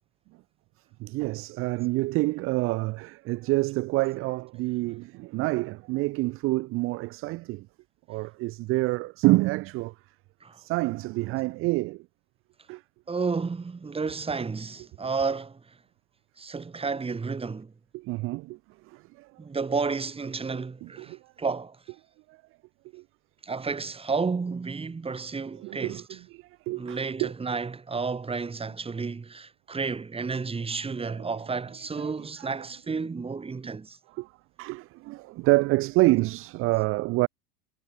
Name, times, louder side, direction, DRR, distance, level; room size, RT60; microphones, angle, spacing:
voice 1, 1.0-7.7 8.1-9.9 10.6-12.1 12.7-12.8 17.9-18.6 18.9-19.3 20.8-21.2 22.3-22.4 22.9-23.0 25.5-27.3 30.7-31.3 31.9-32.5 34.2-34.3 34.6-37.3, right 21 dB, 30° right, 0.4 m, -27 dB
voice 2, 13.1-15.6 16.4-17.7 19.4-21.8 23.4-26.0 26.7-34.0, right 4 dB, 10° right, 1.3 m, -31 dB
hypercardioid pair, 100°, 47 cm